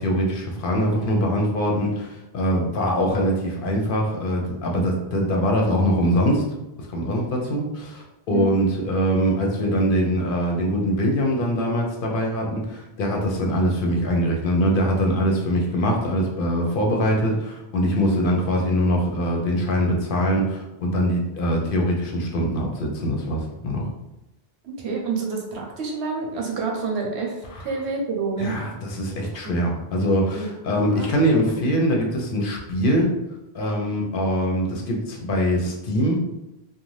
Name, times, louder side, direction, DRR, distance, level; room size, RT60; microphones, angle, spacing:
voice 1, 0.0-6.4 6.8-23.8 27.5-27.6 28.4-33.1 33.5-36.2, equal, 60° left, 0 dB, 0.7 m, -23 dB
voice 2, 24.6-28.6 29.4-29.5 30.3-30.5 30.9-31.1 31.5-31.6, right 4 dB, 80° right, 0 dB, 0.9 m, -28 dB
2.5 x 2.1 x 3.1 m, 0.93 s
omnidirectional pair, 1.1 m